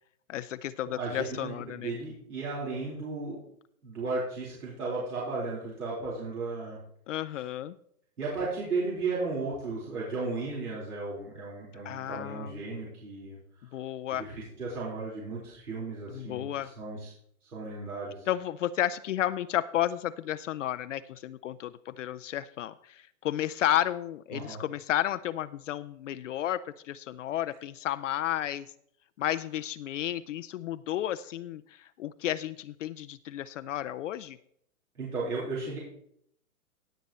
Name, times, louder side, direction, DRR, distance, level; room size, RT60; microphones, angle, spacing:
voice 1, 0.3-1.9 7.1-7.7 11.8-12.6 13.7-14.2 16.1-16.7 18.3-28.7 29.2-34.4, left 12 dB, 55° left, 13 dB, 0.5 m, -32 dB
voice 2, 0.8-3.4 3.8-6.8 8.2-13.4 14.1-17.1 17.4-18.3 24.3-24.6 35.0-35.8, right 3 dB, 85° right, -6 dB, 4.4 m, -35 dB
17.0 x 8.1 x 3.1 m, 0.69 s
hypercardioid pair, 135°, 45 cm